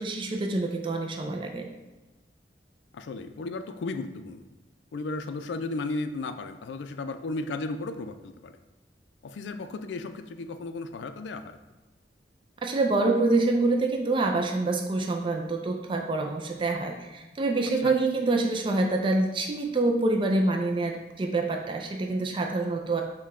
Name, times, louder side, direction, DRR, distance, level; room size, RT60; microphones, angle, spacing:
voice 1, 0.0-1.7 12.6-23.0, right 2 dB, 30° right, 2 dB, 0.4 m, -26 dB
voice 2, 2.9-4.4 4.9-8.6 9.2-11.6 17.8-17.9, left 3 dB, 85° left, 9 dB, 0.4 m, -34 dB
6.4 x 2.2 x 3.5 m, 1.1 s
head